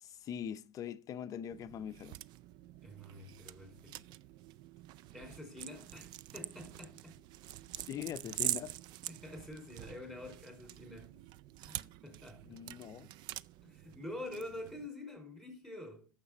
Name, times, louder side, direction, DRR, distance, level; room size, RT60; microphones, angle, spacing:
voice 1, 0.0-2.2 7.9-8.8 12.4-13.1, left 9 dB, 35° left, 0.6 m, -42 dB
sound 1, 1.5-14.9, right 15 dB, 45° right, 0.4 m, -45 dB
voice 2, 2.8-4.0 5.1-7.2 9.1-11.2 11.6-12.6 13.6-16.1, left 1 dB, 5° right, 5.0 m, -47 dB
9.5 x 7.4 x 6.4 m
hypercardioid pair, 110°, 10 cm